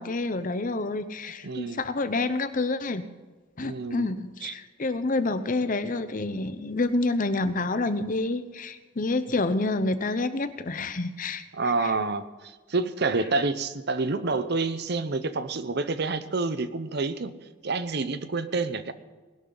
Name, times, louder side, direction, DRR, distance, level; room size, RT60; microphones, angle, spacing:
voice 1, 0.0-3.1 3.6-11.9, left 2 dB, 40° left, 12 dB, 0.7 m, -28 dB
voice 2, 1.4-1.8 3.6-4.1 4.4-4.5 11.5-17.3 17.6-18.9, right 3 dB, 55° right, 12 dB, 0.8 m, -28 dB
20.0 x 11.5 x 4.0 m, 1.3 s
head